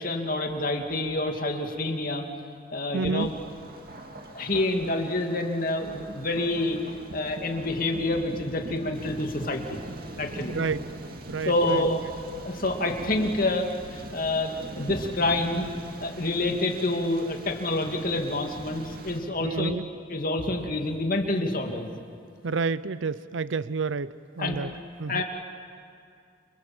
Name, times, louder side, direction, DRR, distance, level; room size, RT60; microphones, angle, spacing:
voice 1, 0.0-2.2 2.7-3.3 4.3-6.8 7.1-9.8 10.2-10.6 11.5-12.0 12.4-15.7 16.0-19.8 20.1-21.9 24.4-24.6 25.1-25.2, left 2 dB, 45° left, 3 dB, 2.4 m, -27 dB
voice 2, 2.9-3.3 10.5-10.9 11.3-11.9 19.4-19.9 22.4-24.7 25.0-25.2, right 4 dB, 75° right, 16 dB, 0.6 m, -29 dB
Thunder, 3.2-19.2, right 1 dB, 50° right, 2.5 m, -41 dB
29.5 x 25.5 x 7.8 m, 2.4 s
head